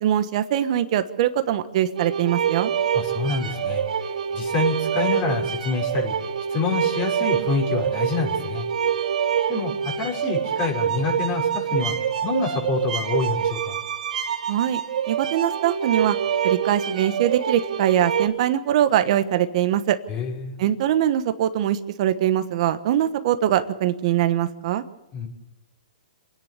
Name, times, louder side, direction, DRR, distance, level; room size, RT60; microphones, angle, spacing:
voice 1, 0.0-2.7 14.5-14.8 15.1-16.2 16.4-20.0 20.6-24.8, right 11 dB, 50° right, 10 dB, 1.2 m, -22 dB
sound 1, 1.9-18.3, right 8 dB, 70° right, 4.1 m, -26 dB
voice 2, 2.9-3.8 4.3-6.2 6.5-8.7 9.5-9.7 10.0-12.0 12.2-13.8 20.1-20.5 25.1-25.3, left 5 dB, 35° left, -1 dB, 6.1 m, -27 dB
27.0 x 10.0 x 9.7 m, 0.97 s
hypercardioid pair, 135°, 4 cm